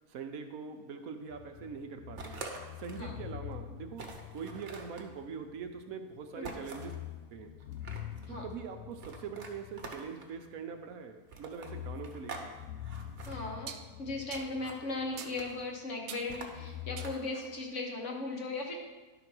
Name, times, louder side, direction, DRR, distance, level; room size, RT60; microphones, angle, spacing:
voice 1, 0.1-2.4 2.8-6.9 7.3-7.5 8.3-12.5, right 6 dB, 65° right, 6 dB, 1.1 m, -43 dB
sound 1, 1.3-5.9 6.2-6.4 6.7-10.9 11.4-15.7 16.5-17.1, left 12 dB, 65° left, 0.9 m, -46 dB
sound 2, 2.2-3.1 3.5-3.6 3.9-5.1 6.4-7.0 7.6-8.3 9.0-10.3 11.3-12.5 12.8-13.4 14.3-14.8 15.1-15.7 16.3-17.5, right 4 dB, 50° right, 1.2 m, -46 dB
sound 3, 12.3-12.5 13.7-13.9 14.3-14.5 15.2-15.4 16.1-16.4 17.0-17.2, right 9 dB, 90° right, 1.3 m, -45 dB
voice 2, 13.2-18.8, left 3 dB, 50° left, 0 dB, 1.4 m, -37 dB
11.0 x 4.0 x 6.0 m, 1.2 s
omnidirectional pair, 1.8 m